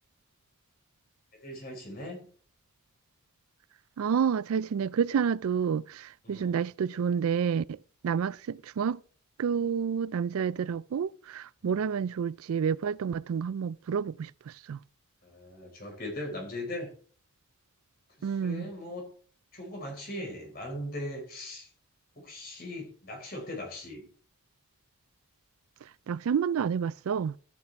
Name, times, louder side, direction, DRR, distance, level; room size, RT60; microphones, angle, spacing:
voice 1, 1.3-2.3 6.2-6.6 8.1-8.2 11.6-11.8 15.2-16.9 18.2-19.1 19.5-21.7 22.1-24.1, left 1 dB, 45° left, 5.0 m, -39 dB
voice 2, 4.0-7.8 8.0-9.0 9.4-14.8 18.2-18.6 26.1-27.4, right 7 dB, 85° right, 0.4 m, -29 dB
13.0 x 8.3 x 3.5 m
head